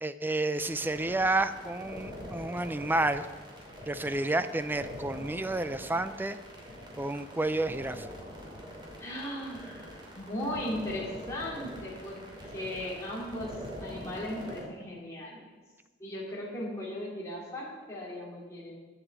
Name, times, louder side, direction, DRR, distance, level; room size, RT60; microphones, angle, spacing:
voice 1, 0.0-3.3 3.9-6.4 7.0-8.1, right 2 dB, 10° right, 11 dB, 0.5 m, -30 dB
sound 1, 0.5-14.6, equal, 25° right, 2.7 m, -44 dB
voice 2, 9.0-12.2 12.5-13.5 13.8-15.5 16.0-18.7, left 1 dB, 15° left, -6 dB, 2.9 m, -37 dB
9.8 x 8.0 x 7.4 m, 1.3 s
head